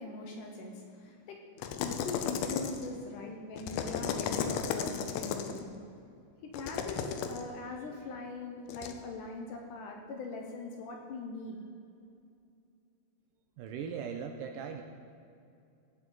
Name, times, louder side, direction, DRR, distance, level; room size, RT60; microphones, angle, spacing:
voice 1, 0.0-1.4 1.8-5.7 6.4-11.6, left 3 dB, 70° left, 1 dB, 2.2 m, -41 dB
sound 1, 1.6-3.0 3.6-5.6 6.5-7.4 8.7-8.9, left 7 dB, 90° left, 2.6 m, -34 dB
voice 2, 13.6-14.8, right 7 dB, 80° right, 4 dB, 2.1 m, -39 dB
17.5 x 7.5 x 4.0 m, 2.5 s
omnidirectional pair, 4.4 m